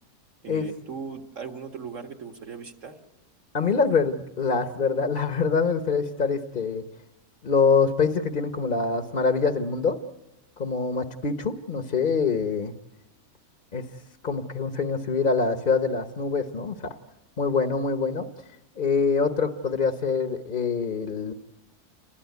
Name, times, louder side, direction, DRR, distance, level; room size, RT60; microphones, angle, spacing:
voice 1, 0.4-2.9, right 6 dB, 55° right, 4 dB, 2.1 m, -38 dB
voice 2, 3.5-6.8 7.4-10.0 10.6-12.7 13.7-13.8 14.2-16.9 17.4-18.3 18.8-21.3, left 5 dB, 35° left, 7 dB, 1.0 m, -25 dB
28.5 x 20.5 x 9.4 m, 1.0 s
omnidirectional pair, 1.6 m